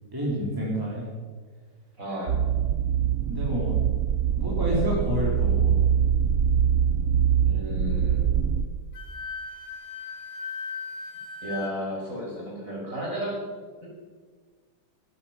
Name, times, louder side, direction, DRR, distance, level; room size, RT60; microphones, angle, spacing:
voice 1, 0.1-1.1 3.3-3.8 4.3-5.7, equal, 10° right, -5 dB, 3.6 m, -28 dB
voice 2, 2.0-2.4 7.4-8.4 11.4-13.4 13.8-13.9, equal, 40° right, -3 dB, 5.6 m, -33 dB
sound 1, 2.3-8.6, right 8 dB, 80° right, 0.7 m, -23 dB
Wind instrument woodwind instrument, 8.9-11.7, left 5 dB, 70° left, 2.9 m, -37 dB
15.5 x 14.0 x 5.8 m, 1.5 s
omnidirectional pair, 2.3 m